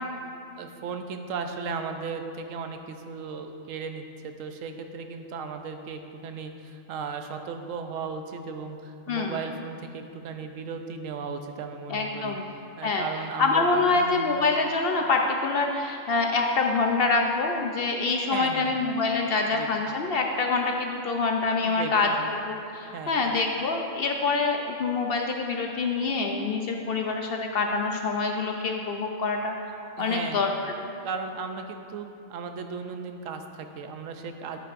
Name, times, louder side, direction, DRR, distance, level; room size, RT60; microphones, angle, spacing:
voice 1, 0.6-12.4 12.8-14.2 18.3-18.8 19.4-19.7 21.6-22.3 22.9-23.2 30.0-30.4 31.0-34.6, right 5 dB, 80° right, 6 dB, 1.0 m, -36 dB
voice 2, 9.1-9.4 11.9-12.4 12.8-13.1 13.4-29.5 30.0-30.5 30.8-30.9, left 3 dB, 60° left, 2 dB, 0.6 m, -26 dB
9.1 x 9.0 x 2.5 m, 2.6 s
omnidirectional pair, 1.3 m